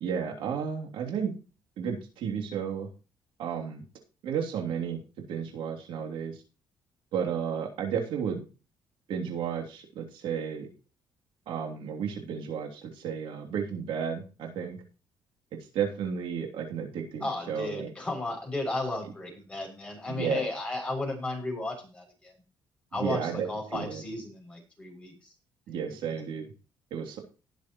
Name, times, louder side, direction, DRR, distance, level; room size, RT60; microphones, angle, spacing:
voice 1, 0.0-1.3 1.8-2.9 3.4-3.8 4.2-6.4 7.1-8.4 9.1-10.7 11.5-14.8 15.7-17.9 20.1-20.4 23.0-24.0 25.7-26.4 26.9-27.2, right 7 dB, 85° right, 1 dB, 3.0 m, -33 dB
voice 2, 17.2-22.3 22.9-25.3, left 2 dB, 15° left, 0 dB, 6.8 m, -34 dB
19.0 x 7.1 x 3.1 m, 0.34 s
cardioid pair, 110°, 8 cm